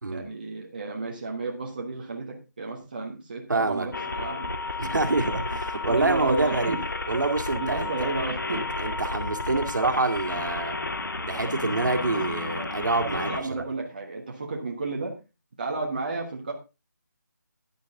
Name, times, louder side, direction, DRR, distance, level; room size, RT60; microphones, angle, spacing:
voice 1, 0.1-4.9 5.8-6.8 7.6-8.7 13.1-15.1 15.6-16.5, right 3 dB, 30° right, 0 dB, 1.4 m, -33 dB
voice 2, 3.5-3.9 4.8-6.8 7.1-8.1 8.5-10.8 11.3-13.3, right 3 dB, 70° right, 5 dB, 2.3 m, -26 dB
sound 1, 3.9-13.4, left 3 dB, 85° left, 2.0 m, -32 dB
10.0 x 10.0 x 3.8 m, 0.27 s
figure-of-eight pair, 180°, 10 cm